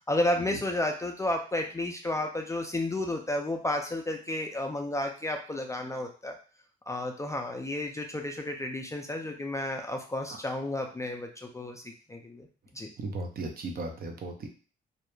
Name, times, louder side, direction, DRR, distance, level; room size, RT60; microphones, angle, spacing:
voice 1, 0.1-6.3 6.9-12.5 12.7-12.9, left 1 dB, 15° left, 2 dB, 0.3 m, -32 dB
voice 2, 13.0-14.5, right 2 dB, 50° right, 4 dB, 0.6 m, -36 dB
2.3 x 2.0 x 3.0 m, 0.38 s
cardioid pair, 90°, 20 cm